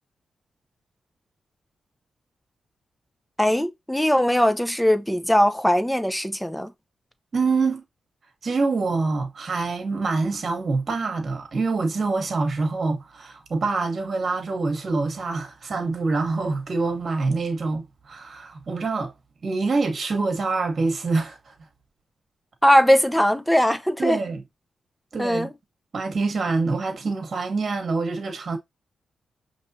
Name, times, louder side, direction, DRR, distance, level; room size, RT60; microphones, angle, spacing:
voice 1, 3.4-6.7 22.6-24.2 25.2-25.5, equal, 5° left, 0.7 m, -20 dB
voice 2, 7.3-7.8 8.4-19.1 19.4-21.5 24.0-24.4 25.1-25.5 25.9-28.6, right 3 dB, 55° right, 1.2 m, -25 dB
5.4 x 3.1 x 2.7 m
supercardioid pair, 55°, 0 cm